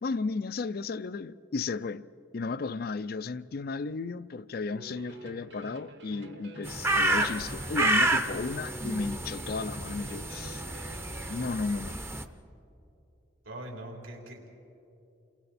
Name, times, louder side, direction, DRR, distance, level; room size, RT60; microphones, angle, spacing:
voice 1, 0.0-2.1 2.3-10.6 11.3-12.0, left 4 dB, 50° left, 0.4 m, -34 dB
sound 1, 4.7-11.5, right 2 dB, 60° right, 1.3 m, -47 dB
sound 2, 6.6-12.2, right 1 dB, 10° right, 0.7 m, -30 dB
voice 2, 13.5-14.5, right 1 dB, 80° right, 3.5 m, -42 dB
29.0 x 23.5 x 4.2 m
head